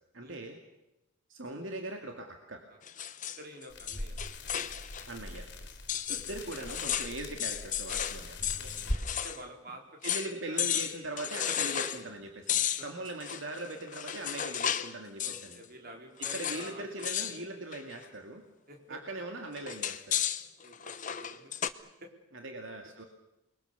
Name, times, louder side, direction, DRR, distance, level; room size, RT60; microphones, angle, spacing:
voice 1, 0.1-0.6 1.3-2.6 5.1-5.5 6.3-8.4 10.0-15.6 16.3-18.4 18.9-20.2 22.3-23.0, right 2 dB, 70° right, 3 dB, 2.4 m, -40 dB
sound 1, 2.8-5.1 5.3-5.4 5.9-9.4 9.7-9.8 10.0-10.3 10.6-12.0 12.5-14.9 15.2-15.6 16.2-16.7 17.0-17.4 17.7-18.0 19.6-21.7, left 10 dB, 40° left, 0.9 m, -34 dB
voice 2, 3.4-4.2 5.9-6.7 8.6-10.0 10.4-10.8 12.8-12.9 15.2-17.5 18.7-19.0 20.6-21.5 22.0-22.1, equal, 50° right, 2 dB, 4.2 m, -49 dB
sound 2, 3.7-9.0, left 1 dB, 55° left, 3.6 m, -41 dB
28.5 x 21.5 x 6.9 m, 0.93 s
head